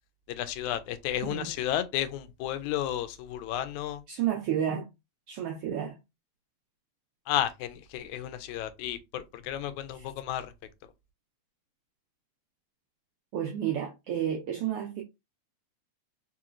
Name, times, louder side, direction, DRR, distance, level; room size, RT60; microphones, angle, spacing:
voice 1, 0.3-4.0 7.3-10.5, left 11 dB, 85° left, 2.0 m, -32 dB
voice 2, 4.1-4.9 5.3-6.0 9.9-10.0 13.3-15.0, right 10 dB, 85° right, 1.3 m, -31 dB
4.6 x 2.9 x 2.5 m
omnidirectional pair, 3.3 m